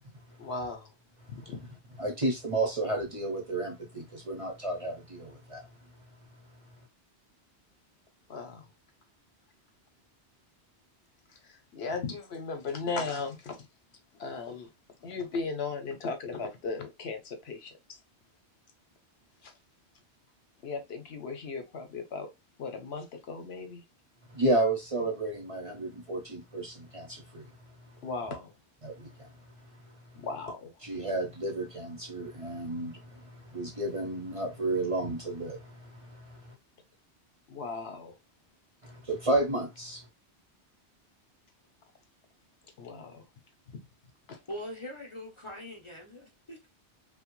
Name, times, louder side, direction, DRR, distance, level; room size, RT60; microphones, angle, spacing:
voice 1, 0.4-0.9 1.3-1.6 8.3-8.6 11.7-13.6 14.2-14.7 15.0-17.7 19.4-19.5 20.6-22.3 22.6-23.8 28.0-28.5 30.1-30.7 37.5-38.1 42.8-43.2 43.7-43.8 44.3-44.4, left 4 dB, 70° left, 0.9 m, -36 dB
voice 2, 2.0-5.7 24.3-27.5 28.8-29.3 30.8-36.5 38.8-40.0, right 2 dB, 35° right, 0.7 m, -32 dB
voice 3, 44.5-46.7, left 1 dB, 35° left, 0.6 m, -42 dB
2.9 x 2.2 x 3.0 m
omnidirectional pair, 1.1 m